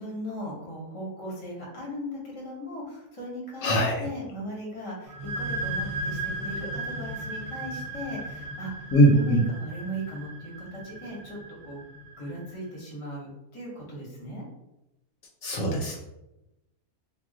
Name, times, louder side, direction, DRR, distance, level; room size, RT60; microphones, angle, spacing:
voice 1, 0.0-8.7 9.1-11.4 11.6-11.8 12.2-14.4, equal, 30° left, -3 dB, 0.6 m, -38 dB
voice 2, 3.6-4.0 8.9-9.4 15.4-16.0, right 1 dB, 70° left, -1 dB, 0.9 m, -21 dB
sound 1, 5.1-12.5, right 2 dB, 65° right, 0.8 m, -36 dB
2.4 x 2.1 x 3.6 m, 0.93 s
omnidirectional pair, 1.6 m